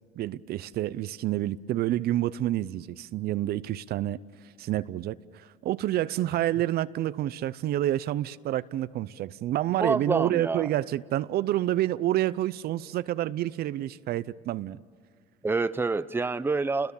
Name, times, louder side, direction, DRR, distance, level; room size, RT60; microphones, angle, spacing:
voice 1, 0.2-4.2 4.6-14.8, right 14 dB, 65° right, 0.6 m, -28 dB
voice 2, 9.8-10.7 15.4-16.9, right 3 dB, 15° right, 0.7 m, -27 dB
29.0 x 21.0 x 7.1 m
cardioid pair, 110°, 17 cm